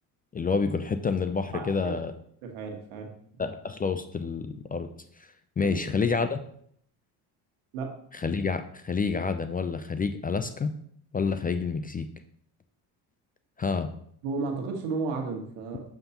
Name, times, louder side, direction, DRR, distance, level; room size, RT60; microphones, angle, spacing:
voice 1, 0.3-2.1 3.4-4.9 5.2-5.3 5.6-6.4 8.1-10.7 11.1-12.1 13.6-13.9, left 5 dB, 20° left, 9 dB, 0.3 m, -28 dB
voice 2, 1.5-2.0 2.4-3.1 5.6-5.8 7.7-7.9 14.2-15.8, right 4 dB, 90° right, 2 dB, 1.4 m, -33 dB
6.8 x 5.8 x 2.9 m, 0.65 s
supercardioid pair, 80°, 46 cm